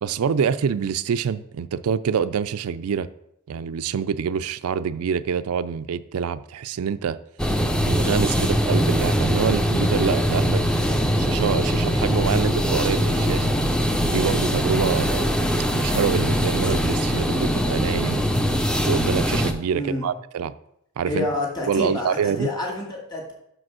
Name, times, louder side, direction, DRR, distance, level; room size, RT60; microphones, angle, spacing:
voice 1, 0.0-3.1 3.5-7.2 7.8-10.6 11.2-13.5 14.1-15.3 15.7-18.2 18.9-20.5 21.0-21.3 21.7-22.5, right 7 dB, 90° right, 0.4 m, -26 dB
sound 1, 7.4-19.5, equal, 5° left, 0.5 m, -22 dB
voice 2, 19.7-20.1 21.1-23.3, left 2 dB, 20° left, 2.0 m, -28 dB
6.3 x 5.0 x 6.1 m
head